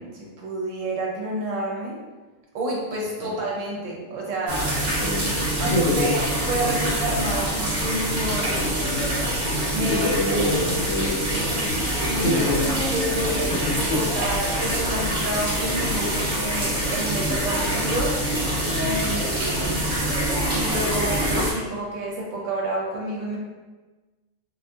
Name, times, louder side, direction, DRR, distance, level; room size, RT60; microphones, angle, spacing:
voice 1, 0.0-2.0 2.5-4.7 5.6-8.8 9.7-10.2 12.1-18.2 18.8-19.8 20.5-23.4, right 1 dB, 75° right, -2 dB, 0.9 m, -29 dB
sound 1, 4.5-21.5, right 1 dB, 45° right, 0.8 m, -25 dB
voice 2, 4.8-6.1 9.8-12.6 13.5-13.6 13.9-14.0, left 1 dB, 60° left, -5 dB, 0.9 m, -26 dB
2.6 x 2.5 x 2.3 m, 1.2 s
omnidirectional pair, 1.4 m